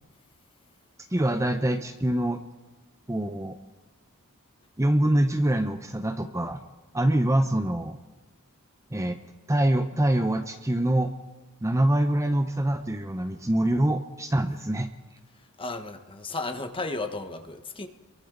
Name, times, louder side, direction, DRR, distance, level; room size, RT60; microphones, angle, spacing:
voice 1, 1.1-2.4 3.1-3.6 4.8-6.6 6.9-8.0 8.9-9.2 9.5-11.1 11.6-14.9, right 1 dB, 15° right, 6 dB, 0.8 m, -24 dB
voice 2, 15.4-17.9, left 3 dB, 25° left, 7 dB, 1.3 m, -34 dB
29.5 x 23.0 x 4.0 m, 1.2 s
head